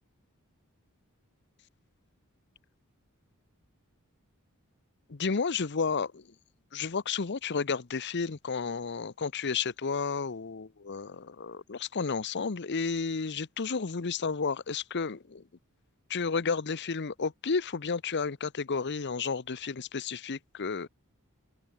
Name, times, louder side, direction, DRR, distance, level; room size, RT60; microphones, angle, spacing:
voice 1, 5.1-6.2 6.7-15.4 16.1-20.9, left 5 dB, 50° left, 0.8 m, -32 dB
head